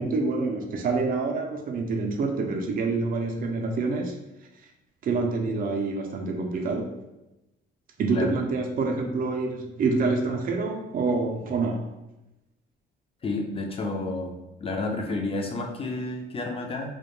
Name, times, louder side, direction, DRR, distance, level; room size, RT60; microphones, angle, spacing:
voice 1, 0.0-4.2 5.0-6.9 8.0-11.9, right 3 dB, 45° right, 3 dB, 0.4 m, -27 dB
voice 2, 13.2-14.3 14.6-17.0, left 2 dB, 30° left, 2 dB, 0.5 m, -30 dB
2.2 x 2.1 x 3.0 m, 0.96 s
cardioid pair, 90°, 20 cm